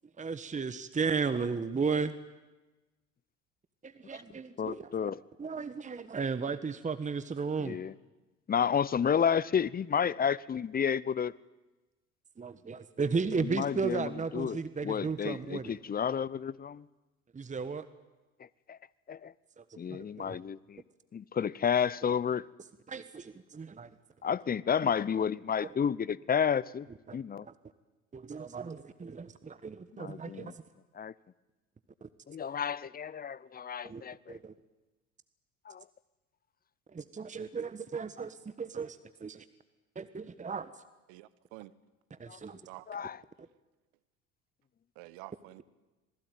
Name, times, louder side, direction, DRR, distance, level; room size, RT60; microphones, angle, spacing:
voice 1, 0.2-2.1 3.8-5.1 5.4-7.8 12.4-15.8 17.3-17.9 19.6-20.4 22.9-23.9 24.8-24.9 27.1-27.2 27.4-27.5 28.1-30.5 32.0-32.1 33.8-34.0 34.3-34.5 36.9-39.4 39.9-40.7 42.1-42.6, right 5 dB, 20° right, 13 dB, 1.3 m, -35 dB
voice 2, 4.6-5.2 7.6-7.9 8.5-11.3 13.4-16.8 18.7-18.8 19.1-19.3 19.8-20.8 21.1-22.5 24.2-26.9 27.1-27.5 30.0-30.5 30.9-31.1 32.3-34.4 35.7-35.8 42.3-42.4 42.9-43.2, left 7 dB, 20° left, 21 dB, 0.8 m, -31 dB
voice 3, 41.1-41.7 42.6-43.0 44.9-45.6, right 18 dB, 60° right, 17 dB, 1.3 m, -49 dB
26.5 x 20.0 x 9.3 m, 1.1 s
hypercardioid pair, 70°, 41 cm